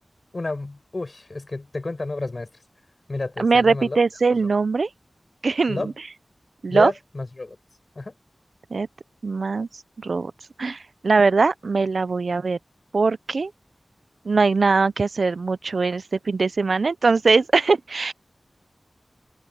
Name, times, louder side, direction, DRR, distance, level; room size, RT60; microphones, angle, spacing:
voice 1, 0.3-2.5 3.1-4.0 5.7-5.9 6.7-7.6 8.0-8.1, left 2 dB, 55° left, 5.6 m, -30 dB
voice 2, 3.4-4.9 5.4-5.9 6.6-6.9 8.7-8.9 9.2-9.7 10.0-10.3 10.6-12.6 12.9-13.5 14.3-18.1, right 4 dB, 85° right, 0.5 m, -21 dB
open air
wide cardioid pair, 50°, 0 cm